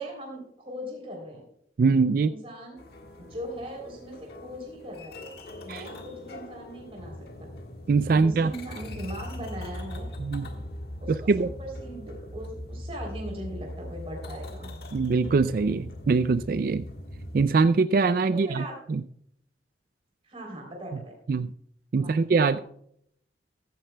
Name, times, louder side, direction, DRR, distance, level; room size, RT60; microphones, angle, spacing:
voice 1, 0.0-1.4 2.2-2.8 3.2-5.2 5.6-7.1 8.1-10.1 11.0-14.8 18.3-18.7 20.2-21.1 22.0-22.2 22.5-22.6, right 1 dB, 35° right, 0 dB, 3.2 m, -39 dB
voice 2, 1.8-2.3 5.7-5.8 7.9-8.5 10.2-10.5 11.1-11.5 14.9-16.9 17.3-18.6 18.9-19.0 21.3-21.5 21.9-22.6, right 4 dB, 50° right, 14 dB, 0.3 m, -23 dB
sound 1, 2.8-17.5, left 1 dB, 60° left, 1.5 m, -40 dB
15.0 x 14.0 x 2.2 m, 0.68 s
head